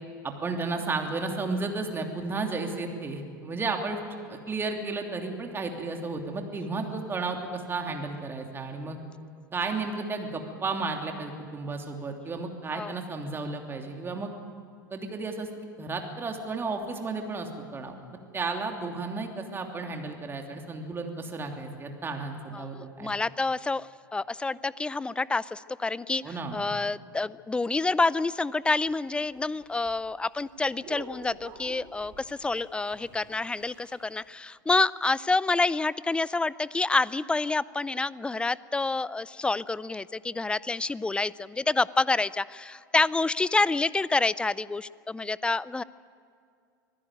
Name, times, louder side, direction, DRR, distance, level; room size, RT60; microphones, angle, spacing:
voice 1, 0.2-4.0 4.3-9.0 9.5-14.3 14.9-17.9 18.3-23.1 26.2-26.6, right 3 dB, 20° right, 3 dB, 3.1 m, -33 dB
voice 2, 22.5-45.8, left 3 dB, 10° left, 20 dB, 0.5 m, -28 dB
sound 1, 28.6-34.3, right 5 dB, 45° right, 5.4 m, -49 dB
25.0 x 15.5 x 9.2 m, 2.3 s
hypercardioid pair, 90°, 11 cm